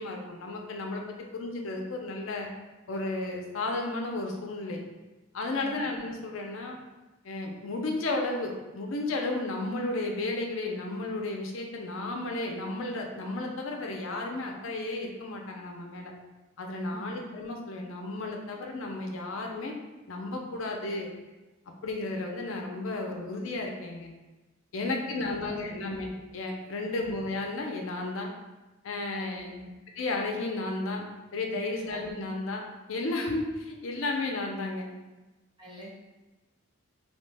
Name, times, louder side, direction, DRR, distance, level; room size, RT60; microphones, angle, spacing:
voice 1, 0.0-2.5 2.9-4.8 5.3-6.8 7.2-16.1 16.6-19.7 20.1-21.1 21.8-24.1 24.7-28.3 28.8-29.5 30.0-31.0 31.3-34.9, left 2 dB, 75° left, 2 dB, 0.5 m, -33 dB
voice 2, 5.6-6.0 16.9-17.3 24.8-26.0 26.8-27.1 29.2-29.8 31.9-32.0 35.6-35.9, right 1 dB, 20° right, -5 dB, 0.6 m, -46 dB
2.9 x 2.1 x 3.2 m, 1.1 s
head